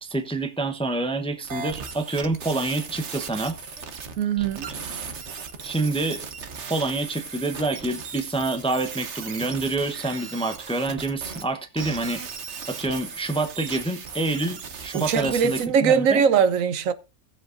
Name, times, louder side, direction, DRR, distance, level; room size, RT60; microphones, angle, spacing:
voice 1, 0.0-3.6 5.6-6.3 6.7-12.2 12.7-16.2, right 2 dB, 5° left, 0.7 m, -27 dB
sound 1, 1.4-11.5 11.8-15.7, right 5 dB, 60° right, 1.3 m, -37 dB
voice 2, 4.2-4.7 14.9-16.9, right 7 dB, 80° right, 1.1 m, -21 dB
18.0 x 7.5 x 2.5 m
omnidirectional pair, 1.4 m